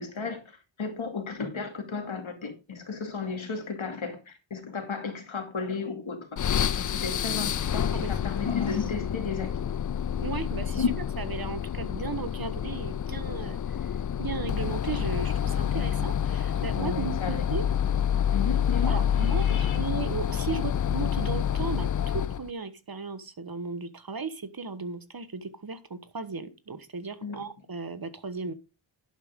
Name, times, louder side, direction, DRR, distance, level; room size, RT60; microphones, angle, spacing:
voice 1, 0.0-6.4 6.8-9.5 10.7-10.9 16.8-17.4 18.3-19.8 27.2-27.5, left 5 dB, 80° left, 2.5 m, -34 dB
sound 1, 6.4-22.5, left 9 dB, 45° left, 0.4 m, -28 dB
voice 2, 10.2-10.8 11.2-17.6 18.9-28.5, right 4 dB, 50° right, 1.3 m, -36 dB
11.0 x 8.5 x 3.7 m
wide cardioid pair, 60°, 47 cm